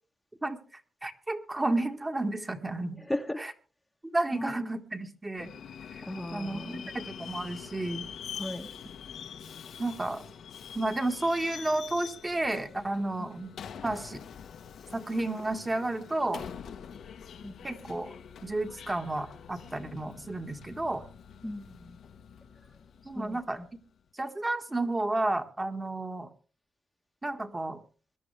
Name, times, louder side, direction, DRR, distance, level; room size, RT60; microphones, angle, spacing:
voice 1, 1.0-3.0 3.4-3.5 4.1-5.5 5.9-6.0 6.3-8.0 9.8-10.2 10.7-13.5 13.8-14.2 14.9-16.4 17.6-18.1 18.4-21.0 23.1-23.6 24.1-26.3 27.2-27.8, right 2 dB, 15° right, 5 dB, 1.8 m, -31 dB
voice 2, 3.0-3.4 4.3-4.7 6.0-6.9 8.4-8.7 13.2-13.3 17.4-17.5 21.4-22.0 23.1-23.4, left 1 dB, 10° left, 3 dB, 1.3 m, -36 dB
Subway metro underground, 5.4-23.8, left 7 dB, 75° left, 1.3 m, -45 dB
22.0 x 11.5 x 3.4 m, 0.37 s
cardioid pair, 105°, 0 cm